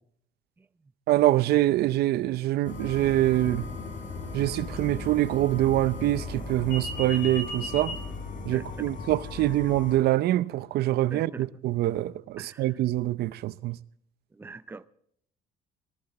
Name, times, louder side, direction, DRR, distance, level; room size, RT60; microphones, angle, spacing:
voice 1, 1.1-3.7 4.3-8.0 8.4-13.8, right 15 dB, 70° right, 0.6 m, -25 dB
sound 1, 2.7-10.0, left 3 dB, 50° left, 5.2 m, -36 dB
voice 2, 8.5-8.9 11.1-11.5 12.4-12.8 14.3-14.9, right 3 dB, 10° right, 0.5 m, -43 dB
18.0 x 14.0 x 4.1 m
cardioid pair, 110°, 17 cm